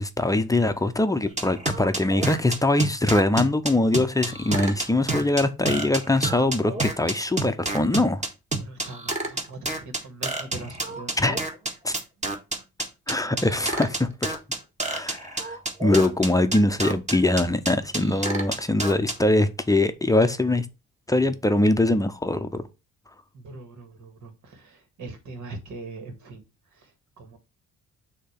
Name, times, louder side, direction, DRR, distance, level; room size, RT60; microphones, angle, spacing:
voice 1, 0.0-8.2 11.2-11.4 11.8-11.9 13.1-14.4 14.8-20.7 21.1-22.6, left 2 dB, 10° left, 0.6 m, -22 dB
sound 1, 1.4-19.1, right 2 dB, 25° right, 1.7 m, -28 dB
voice 2, 8.5-11.2 23.3-26.4 26.7-27.4, right 2 dB, 70° right, 2.0 m, -41 dB
6.6 x 2.9 x 5.7 m
cardioid pair, 90°, 30 cm